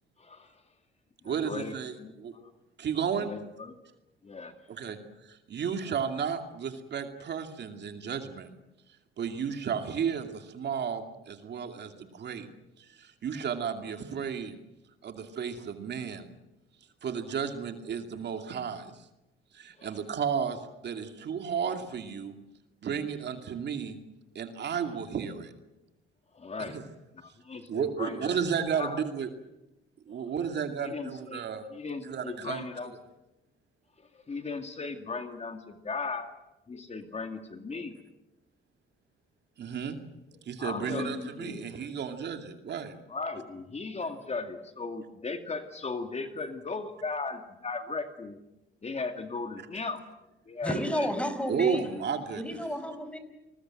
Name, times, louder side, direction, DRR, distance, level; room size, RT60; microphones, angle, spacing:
voice 1, 0.2-0.5 1.2-2.5 3.2-3.8 4.2-4.5 19.8-20.0 26.3-26.8 27.1-28.4 28.7-29.1 30.1-30.3 30.8-32.9 34.0-36.3 36.7-37.9 40.3-41.6 43.1-48.4 48.8-50.0 50.5-51.1, left 4 dB, 35° left, 7 dB, 2.3 m, -37 dB
voice 2, 1.2-2.3 2.8-3.3 4.7-5.0 5.3-8.5 9.2-12.5 12.8-14.6 15.0-16.3 17.0-18.9 19.5-22.3 22.8-24.0 24.3-25.5 26.7-26.8 27.7-29.3 30.1-31.7 32.0-32.7 39.6-40.0 40.5-43.0 51.5-52.6, right 7 dB, 60° right, 6 dB, 2.5 m, -33 dB
voice 3, 50.6-51.9 52.4-53.2, equal, 5° left, 9 dB, 4.8 m, -31 dB
29.0 x 20.5 x 7.7 m, 0.97 s
cardioid pair, 90°, 20 cm